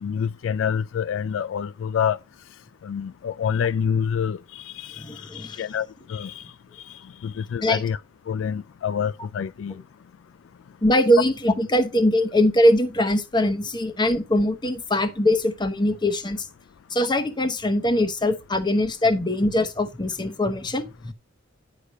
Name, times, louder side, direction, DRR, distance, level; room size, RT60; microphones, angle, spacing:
voice 1, 0.0-2.2 2.8-5.0 5.3-6.4 7.2-8.0 8.3-9.8, left 7 dB, 70° left, 0.3 m, -27 dB
voice 2, 5.0-5.6 7.6-7.8 10.8-16.4 16.9-21.1, left 1 dB, 25° left, 1.0 m, -22 dB
10.0 x 4.9 x 4.0 m
head